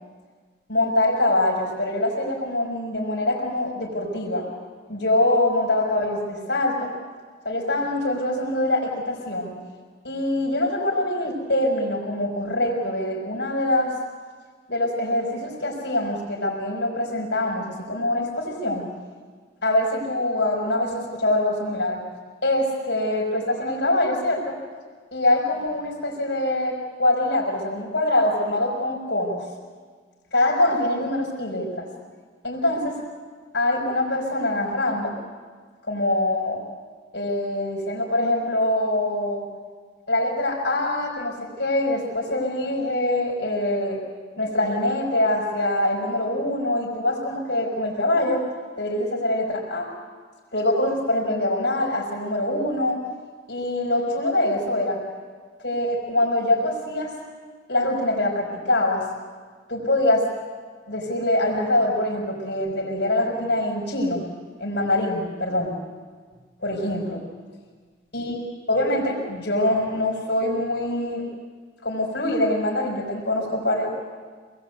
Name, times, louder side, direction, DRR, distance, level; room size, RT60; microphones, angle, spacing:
voice 1, 0.7-4.5 4.9-6.9 7.4-9.6 10.0-13.9 14.7-18.9 19.6-22.0 22.4-24.6 25.1-29.4 30.3-31.9 32.4-33.0 33.5-35.1 35.9-36.6 37.1-39.4 40.1-44.0 44.4-48.4 48.8-49.9 50.5-53.0 53.5-55.0 55.6-57.1 57.7-59.1 59.7-60.3 60.9-64.2 64.6-65.8 66.6-67.2 68.1-68.3 68.7-71.3 71.8-73.9, left 1 dB, 65° left, -1 dB, 4.9 m, -24 dB
25.5 x 20.0 x 8.1 m, 1.5 s
head